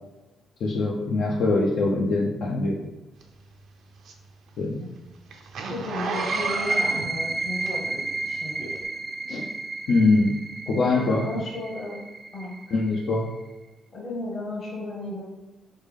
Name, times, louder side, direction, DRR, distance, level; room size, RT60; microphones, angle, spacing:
voice 1, 0.6-2.8 4.6-4.8 9.3-9.5 9.9-10.3 10.7-11.2 12.7-13.3, left 3 dB, 70° left, -2 dB, 0.6 m, -23 dB
Zipper (clothing), 3.2-8.1 8.7-8.8, right 4 dB, 70° right, 0.6 m, -33 dB
voice 2, 5.7-8.8 10.7-12.0 12.3-12.5 13.9-15.2, left 2 dB, 40° left, -6 dB, 1.1 m, -34 dB
sound 1, 6.0-13.4, right 3 dB, 25° right, 0.3 m, -31 dB
4.1 x 3.3 x 3.6 m, 1.1 s
cardioid pair, 90°, 0 cm